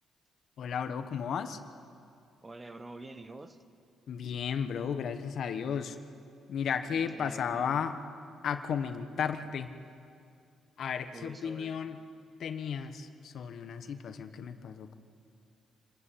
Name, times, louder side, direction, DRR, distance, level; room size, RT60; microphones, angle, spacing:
voice 1, 0.6-1.6 4.1-6.0 6.5-8.0 8.4-9.7 10.8-12.0 12.4-14.9, left 7 dB, 65° left, 9 dB, 1.3 m, -34 dB
voice 2, 2.4-3.6 6.9-7.8 11.1-11.8, right 2 dB, 20° right, 10 dB, 1.3 m, -47 dB
27.0 x 13.5 x 9.2 m, 2.4 s
cardioid pair, 90°, 0 cm